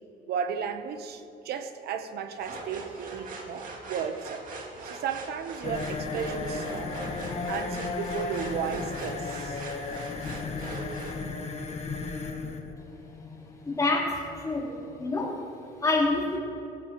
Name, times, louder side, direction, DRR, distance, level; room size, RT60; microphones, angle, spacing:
voice 1, 0.3-4.4 4.8-6.9 7.4-9.6, right 7 dB, 70° right, 9 dB, 1.0 m, -34 dB
sound 1, 2.4-11.2, right 3 dB, 55° right, 2.2 m, -41 dB
sound 2, 5.6-15.2, left 4 dB, 40° left, 1.4 m, -35 dB
voice 2, 13.7-15.4 15.8-16.4, left 2 dB, 20° left, -5 dB, 3.6 m, -27 dB
18.5 x 15.0 x 3.1 m, 2.8 s
cardioid pair, 110°, 17 cm